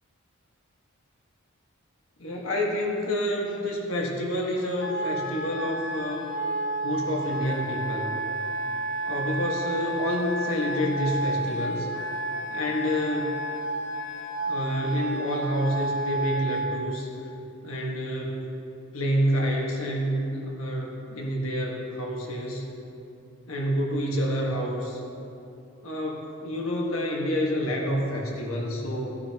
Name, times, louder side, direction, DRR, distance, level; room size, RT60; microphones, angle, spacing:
voice 1, 2.2-6.3 6.8-8.2 9.0-11.9 12.5-13.3 14.5-17.1 17.6-18.4 18.9-22.6 23.5-25.0 25.8-29.2, equal, 80° left, -1 dB, 1.5 m, -28 dB
Wind instrument woodwind instrument, 4.8-16.8, right 2 dB, 60° left, 0.8 m, -31 dB
17.0 x 9.4 x 2.9 m, 2.8 s
head